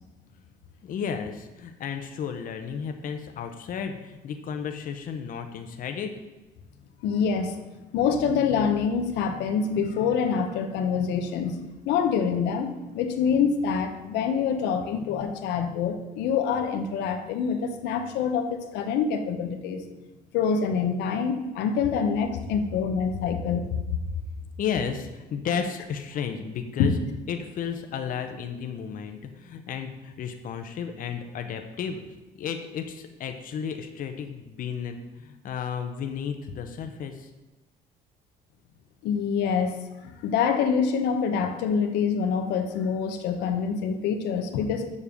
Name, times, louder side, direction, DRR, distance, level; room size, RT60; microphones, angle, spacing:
voice 1, 0.8-6.1 23.7-23.8 24.6-26.9 27.3-37.3, left 7 dB, 55° left, 6 dB, 0.9 m, -33 dB
voice 2, 7.0-7.6 7.9-19.8 20.3-23.7 26.8-27.0 39.0-39.8 40.0-44.9, left 6 dB, 85° left, 6 dB, 1.0 m, -26 dB
7.3 x 5.5 x 6.8 m, 1.1 s
cardioid pair, 110°, 17 cm